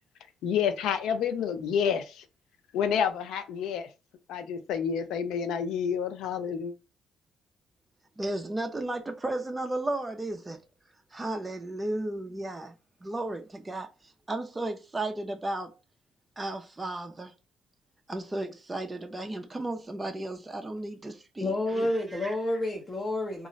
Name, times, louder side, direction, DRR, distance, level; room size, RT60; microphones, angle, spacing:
voice 1, 0.4-2.2 2.7-3.9 4.3-6.7, left 7 dB, 85° left, 0.4 m, -29 dB
voice 2, 8.2-10.6 11.1-12.7 13.0-15.7 16.4-17.3 18.1-22.4, right 2 dB, 20° right, 0.4 m, -34 dB
voice 3, 21.4-23.5, left 1 dB, 25° left, 0.6 m, -29 dB
2.4 x 2.0 x 3.9 m
cardioid pair, 90°, 0 cm